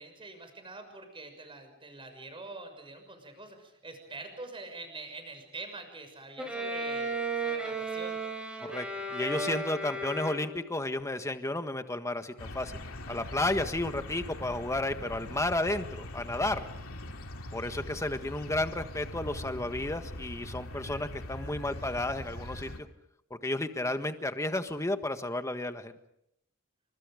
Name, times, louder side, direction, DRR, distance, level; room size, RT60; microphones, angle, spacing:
voice 1, 0.0-8.2, right 2 dB, 25° right, 7 dB, 6.4 m, -45 dB
Bowed string instrument, 6.4-10.8, right 2 dB, 5° right, 5.3 m, -34 dB
voice 2, 8.6-12.8 13.1-16.6 17.5-22.9 23.3-25.9, left 2 dB, 15° left, 8 dB, 1.5 m, -32 dB
sound 1, 12.4-22.8, left 1 dB, 75° left, 2.5 m, -42 dB
29.5 x 25.5 x 5.2 m, 0.77 s
head